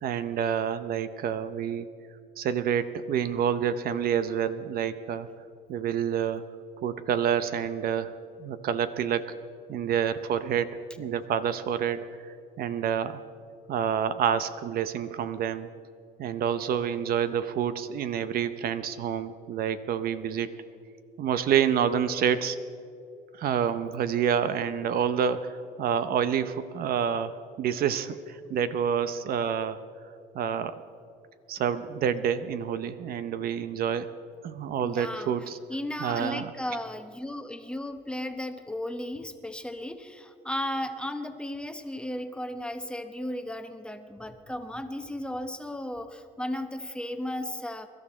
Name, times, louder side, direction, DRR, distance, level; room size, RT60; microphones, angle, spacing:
voice 1, 0.0-1.9 2.4-5.3 5.7-6.5 6.8-9.4 9.7-13.2 13.7-15.7 16.2-20.5 21.2-22.6 23.3-29.8 30.3-30.8 31.5-34.1 34.4-35.6 36.0-36.5, right 8 dB, 60° right, 12 dB, 0.7 m, -28 dB
voice 2, 34.8-47.9, left 1 dB, 5° left, 7 dB, 1.0 m, -35 dB
23.5 x 12.5 x 4.3 m, 2.4 s
cardioid pair, 110°, 17 cm